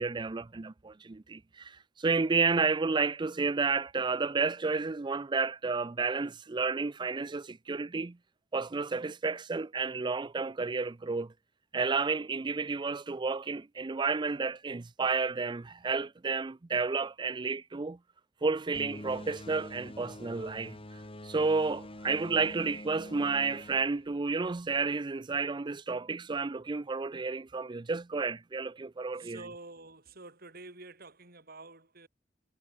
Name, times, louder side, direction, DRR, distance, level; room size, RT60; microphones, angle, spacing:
voice 1, 0.0-8.2 8.5-11.3 11.7-18.0 18.4-20.8 21.2-29.4, right 4 dB, 25° right, 0.5 m, -31 dB
sound 1, 18.7-24.8, left 1 dB, 30° left, 2.6 m, -46 dB
voice 2, 29.2-32.1, right 3 dB, 55° right, 5.9 m, -48 dB
head